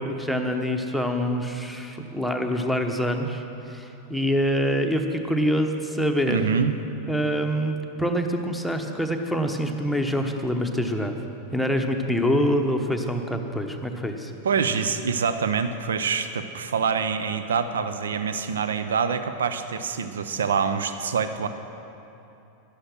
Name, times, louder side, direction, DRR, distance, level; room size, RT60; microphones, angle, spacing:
voice 1, 0.0-6.5 7.1-11.2 11.5-14.3, equal, ahead, 4 dB, 1.0 m, -25 dB
voice 2, 6.3-6.7 14.4-21.5, right 6 dB, 65° right, 10 dB, 0.6 m, -25 dB
12.0 x 11.5 x 6.2 m, 3.0 s
figure-of-eight pair, 90°, 0 cm